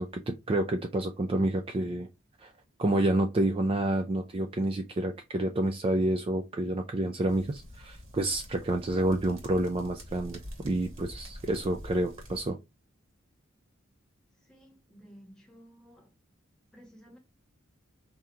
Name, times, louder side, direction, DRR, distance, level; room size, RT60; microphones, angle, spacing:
voice 1, 0.0-2.1 2.4-2.5 2.8-12.6, right 1 dB, 25° right, 0.4 m, -29 dB
sound 1, 7.3-12.5, equal, 85° right, 1.8 m, -46 dB
voice 2, 14.4-16.1 16.7-17.2, equal, 5° left, 1.3 m, -54 dB
3.6 x 2.8 x 4.4 m
head